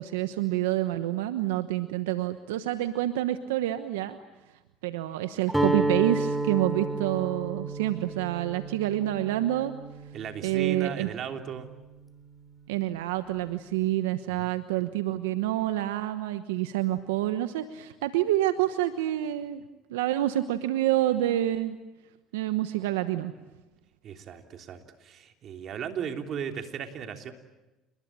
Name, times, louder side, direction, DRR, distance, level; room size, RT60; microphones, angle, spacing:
voice 1, 0.0-4.2 4.8-9.7 10.4-11.1 12.7-19.6 19.9-21.8 22.3-23.3, right 14 dB, 90° right, 10 dB, 1.1 m, -28 dB
Guitar, 5.5-11.5, right 2 dB, 5° right, 3.3 m, -31 dB
voice 2, 10.1-11.7 14.4-14.5 24.0-27.3, right 7 dB, 55° right, 5 dB, 3.4 m, -36 dB
29.5 x 21.5 x 8.9 m, 1.1 s
supercardioid pair, 80°, 0 cm